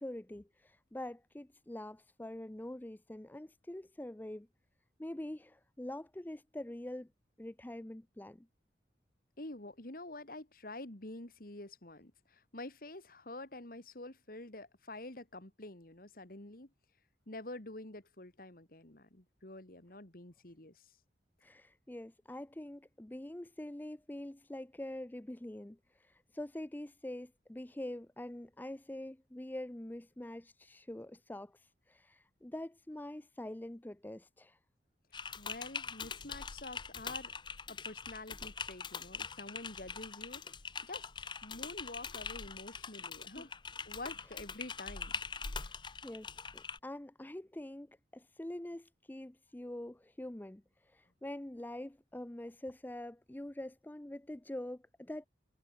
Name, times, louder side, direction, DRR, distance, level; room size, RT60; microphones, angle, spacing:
voice 1, 0.0-4.5 5.0-7.1 7.4-8.5 21.4-34.6 43.4-43.5 45.6-45.7 46.0-55.2, left 1 dB, 10° left, 0.5 m, -45 dB
voice 2, 9.4-16.7 17.3-20.8 35.1-37.3 37.7-40.4 40.8-43.5 43.9-45.1 45.4-45.5, left 2 dB, 50° left, 2.5 m, -48 dB
Typing, 35.1-46.8, left 5 dB, 25° left, 0.8 m, -43 dB
head